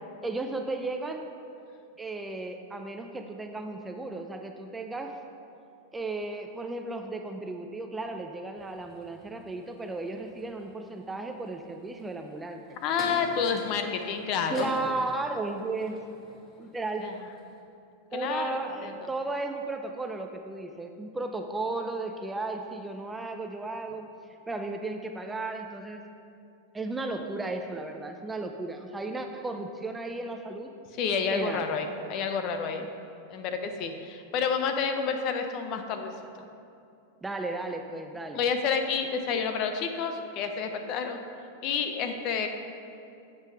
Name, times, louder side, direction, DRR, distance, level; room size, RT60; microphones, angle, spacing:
voice 1, 0.2-1.3 2.0-5.2 5.9-12.8 14.5-16.0 16.6-17.1 18.1-24.1 24.5-26.0 26.7-30.7 31.3-31.6 32.8-32.9 37.2-38.4, right 2 dB, 10° right, 5 dB, 0.4 m, -34 dB
sound 1, 8.6-17.6, left 1 dB, 15° left, 1.3 m, -47 dB
voice 2, 12.8-14.7 17.0-17.1 18.1-19.1 31.0-32.8 33.3-36.1 38.3-41.2 41.6-42.5, left 6 dB, 40° left, 6 dB, 0.6 m, -29 dB
7.6 x 4.7 x 5.6 m, 2.6 s
supercardioid pair, 140°, 0 cm